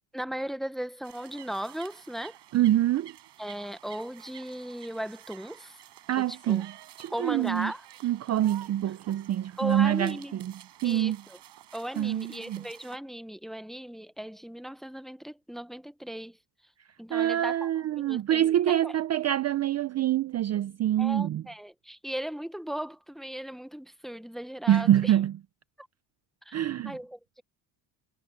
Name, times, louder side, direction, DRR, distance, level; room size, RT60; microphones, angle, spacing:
voice 1, 0.1-2.4 3.4-5.8 6.2-6.6 7.1-7.8 9.6-10.4 10.8-11.4 11.7-16.4 17.0-17.7 18.0-18.9 21.0-25.1 26.4-26.6 26.8-27.4, right 1 dB, ahead, 0.7 m, -37 dB
sound 1, 1.0-13.0, right 13 dB, 60° right, 6.6 m, -51 dB
voice 2, 2.5-3.1 6.1-6.7 7.0-7.7 8.0-10.5 10.8-11.2 12.0-12.6 17.1-21.4 24.7-25.4 26.5-26.9, right 12 dB, 35° right, 0.4 m, -25 dB
cardioid pair, 140°, 47 cm